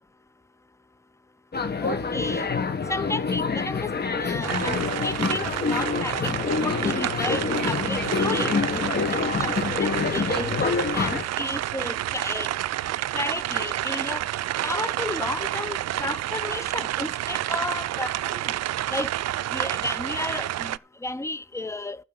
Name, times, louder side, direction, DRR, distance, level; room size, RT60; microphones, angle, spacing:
sound 1, 1.5-11.2, left 5 dB, 35° left, 1.4 m, -26 dB
voice 1, 1.8-2.5 2.9-3.9 4.2-8.5 9.4-12.5 13.1-14.2 14.6-18.5 18.9-19.1 19.5-22.0, left 2 dB, 10° left, 0.7 m, -33 dB
sound 2, 4.4-20.8, right 13 dB, 60° right, 0.5 m, -29 dB
12.0 x 4.5 x 8.0 m
cardioid pair, 90°, 30 cm